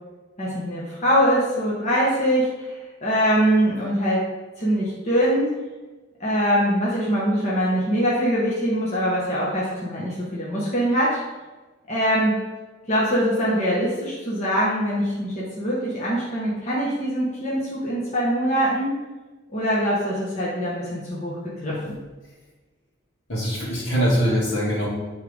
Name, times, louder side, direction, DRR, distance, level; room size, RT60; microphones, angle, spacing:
voice 1, 0.4-4.2 4.6-5.5 6.2-11.2 11.9-12.3 12.9-18.9 19.5-21.9, equal, 35° left, -7 dB, 1.4 m, -23 dB
voice 2, 23.3-24.9, equal, 65° left, -5 dB, 2.3 m, -22 dB
10.0 x 3.7 x 3.6 m, 1.2 s
head